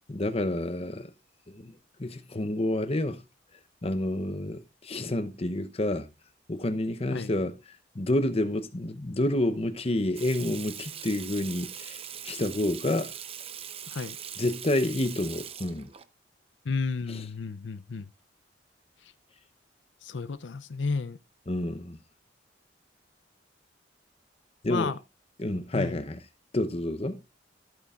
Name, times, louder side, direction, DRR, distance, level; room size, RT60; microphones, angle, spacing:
voice 1, 0.1-1.1 1.5-1.7 2.0-3.2 3.8-6.1 6.5-7.6 7.9-13.1 14.4-15.9 17.1-17.3 21.5-22.0 24.6-24.9 25.4-26.2 26.5-27.2, left 1 dB, 35° left, 0.8 m, -29 dB
Water tap faucet / Sink (filling or washing), 10.2-16.1, right 9 dB, 35° right, 0.7 m, -41 dB
voice 2, 16.6-18.0 20.0-21.2 24.7-25.0 25.7-26.0, left 4 dB, 80° left, 0.6 m, -32 dB
14.5 x 8.5 x 2.5 m
head